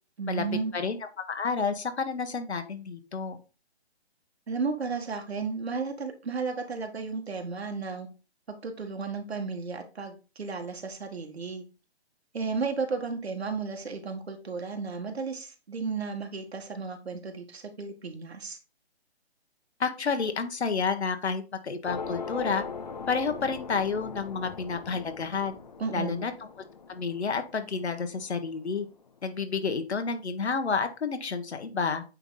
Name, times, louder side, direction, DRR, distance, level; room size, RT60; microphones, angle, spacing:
voice 1, 0.2-0.7 4.5-8.1 8.5-11.6 12.3-18.6 25.8-26.3, right 4 dB, 70° right, 4 dB, 1.8 m, -33 dB
voice 2, 0.7-3.4 19.8-22.6 23.1-25.5 25.9-26.3 26.9-28.9 29.2-32.0, left 5 dB, 80° left, 8 dB, 1.5 m, -30 dB
sound 1, 21.9-28.7, left 5 dB, 40° left, 0.6 m, -40 dB
9.0 x 3.6 x 4.0 m, 0.32 s
hypercardioid pair, 170°, 33 cm